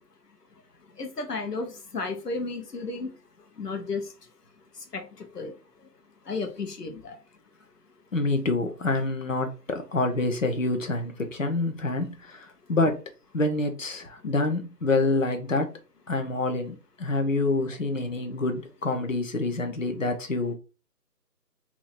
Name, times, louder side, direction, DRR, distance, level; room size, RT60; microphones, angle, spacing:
voice 1, 1.0-3.1 3.6-4.0 4.9-5.5 6.3-7.1, left 3 dB, 70° left, 1.2 m, -33 dB
voice 2, 8.1-13.0 13.3-15.7 16.1-20.5, left 2 dB, 50° left, 0.9 m, -27 dB
3.0 x 2.9 x 4.2 m
figure-of-eight pair, 165°, 50 cm